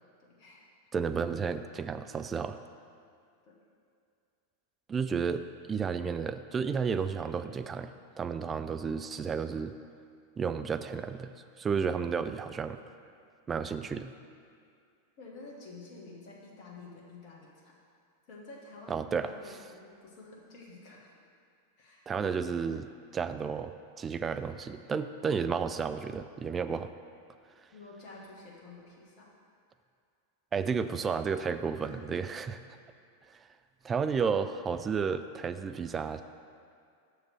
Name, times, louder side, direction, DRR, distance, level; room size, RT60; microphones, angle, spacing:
voice 1, 0.2-0.7 3.5-3.6 15.2-17.7 18.3-21.1 21.8-22.1 27.7-29.3 31.8-32.3, left 3 dB, 45° left, -3 dB, 1.4 m, -50 dB
voice 2, 0.9-2.6 4.9-9.7 10.4-11.3 11.6-12.8 13.5-14.1 18.9-19.3 22.1-22.9 23.1-26.9 30.5-32.6 33.3-33.4 33.8-36.2, right 6 dB, 20° right, 10 dB, 0.3 m, -32 dB
6.1 x 4.8 x 6.6 m, 2.4 s
figure-of-eight pair, 90°, 0 cm